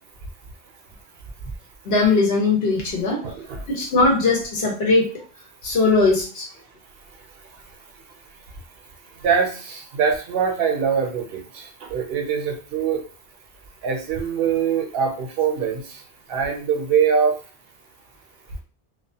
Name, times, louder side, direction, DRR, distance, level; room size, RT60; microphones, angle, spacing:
voice 1, 1.8-3.2 3.7-5.1 5.6-6.4, left 3 dB, 80° left, -2 dB, 1.1 m, -19 dB
voice 2, 3.2-3.6 9.2-13.0 13.8-16.0 16.3-17.4, right 7 dB, 70° right, 3 dB, 0.8 m, -23 dB
2.4 x 2.1 x 2.7 m, 0.38 s
omnidirectional pair, 1.0 m